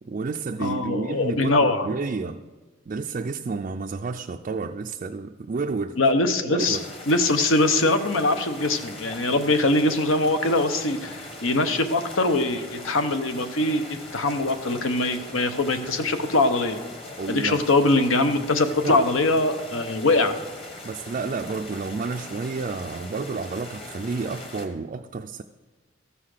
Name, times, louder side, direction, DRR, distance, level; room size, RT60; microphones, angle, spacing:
voice 1, 0.0-2.4 2.9-6.0 6.4-6.9 17.2-17.6 18.8-19.0 20.8-25.4, right 4 dB, 40° right, 0.3 m, -30 dB
voice 2, 0.6-1.9 6.0-6.8 7.1-16.8 17.3-20.3, left 2 dB, 80° left, 0.9 m, -22 dB
sound 1, 6.6-24.7, left 2 dB, 30° left, 1.3 m, -41 dB
14.0 x 5.7 x 6.5 m
head